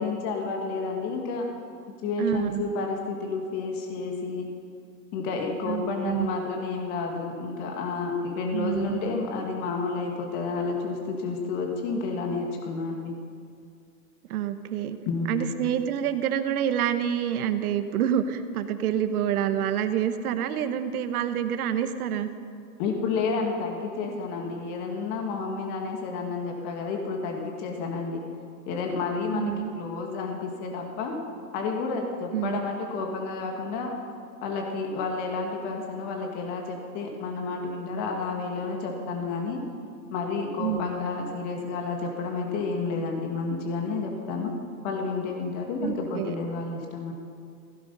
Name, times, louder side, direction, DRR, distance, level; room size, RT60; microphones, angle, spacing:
voice 1, 0.0-1.5 2.0-4.5 5.1-13.1 15.1-15.4 22.8-28.2 28.7-31.2 31.5-33.9 34.4-39.6 40.1-44.5 44.8-47.1, left 4 dB, 35° left, 1 dB, 2.2 m, -30 dB
voice 2, 2.2-2.6 5.6-6.3 8.5-9.0 14.3-15.0 15.3-22.3 29.3-29.7 32.3-32.6 40.6-40.8 45.8-46.3, right 10 dB, 65° right, 10 dB, 1.4 m, -27 dB
16.5 x 16.0 x 5.5 m, 2.3 s
supercardioid pair, 160°, 48 cm